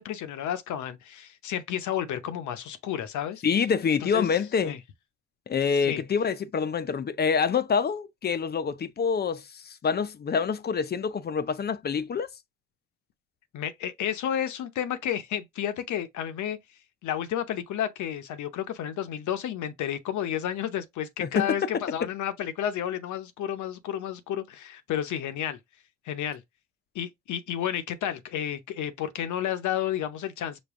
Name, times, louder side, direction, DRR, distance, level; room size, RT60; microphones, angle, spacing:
voice 1, 0.0-3.4 4.1-4.3 4.6-4.8 5.8-6.0 13.5-16.6 17.0-25.6 26.1-26.4 26.9-30.6, left 10 dB, 75° left, 0.8 m, -31 dB
voice 2, 3.4-4.7 5.5-12.3 21.2-21.5, left 6 dB, 35° left, 0.5 m, -26 dB
5.2 x 2.3 x 3.5 m
cardioid pair, 90°, 30 cm